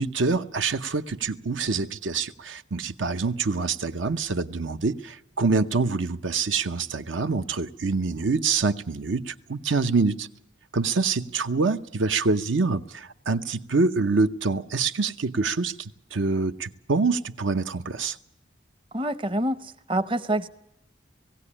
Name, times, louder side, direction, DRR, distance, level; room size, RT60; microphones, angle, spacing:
voice 1, 0.0-10.3 10.7-18.2, right 4 dB, 85° right, 0.8 m, -26 dB
voice 2, 18.9-20.5, right 1 dB, 25° right, 0.7 m, -27 dB
18.5 x 16.5 x 9.9 m
head